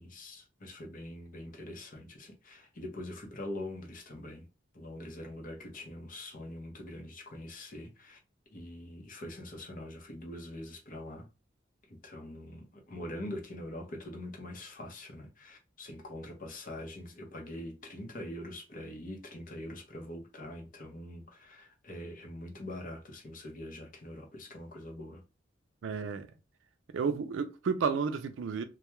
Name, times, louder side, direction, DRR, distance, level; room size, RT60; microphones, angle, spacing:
voice 1, 0.0-4.5 4.7-8.2 8.5-11.3 11.9-25.2, left 1 dB, 45° left, 0.7 m, -43 dB
voice 2, 25.8-26.3 26.9-28.6, right 5 dB, 90° right, 0.4 m, -31 dB
2.2 x 2.2 x 2.9 m
head